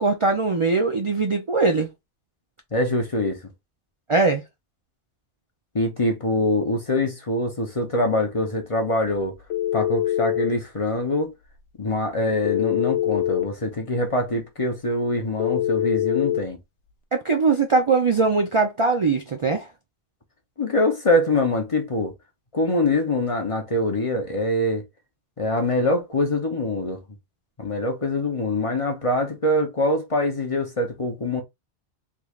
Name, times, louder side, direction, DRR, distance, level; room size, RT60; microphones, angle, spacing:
voice 1, 0.0-1.9 4.1-4.4 17.1-19.7, right 4 dB, 45° right, 0.4 m, -21 dB
voice 2, 2.7-3.4 5.7-9.4 9.7-11.3 11.8-16.6 20.6-22.1 22.5-24.8 25.4-27.0 27.6-31.4, left 1 dB, 35° left, 0.7 m, -24 dB
Telephone, 9.5-10.5 12.4-13.5 15.4-16.4, left 12 dB, 70° left, 0.9 m, -23 dB
3.5 x 3.1 x 2.4 m
omnidirectional pair, 1.2 m